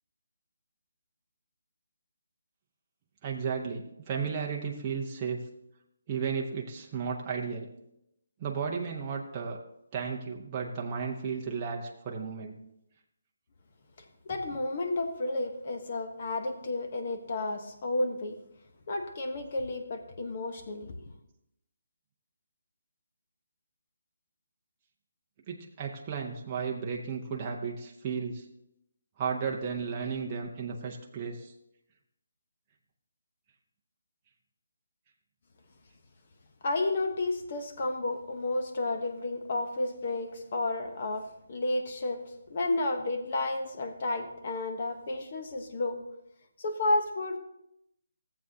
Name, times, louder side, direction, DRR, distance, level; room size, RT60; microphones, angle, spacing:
voice 1, 3.2-5.5 6.1-7.7 8.4-9.6 9.9-12.6 25.5-28.4 29.2-31.5, right 6 dB, 20° right, -1 dB, 0.7 m, -34 dB
voice 2, 14.2-18.4 18.9-21.0 36.6-42.2 42.5-46.0 46.6-47.4, left 2 dB, 40° left, 6 dB, 1.0 m, -31 dB
14.5 x 7.7 x 2.8 m, 0.82 s
hypercardioid pair, 170°, 0 cm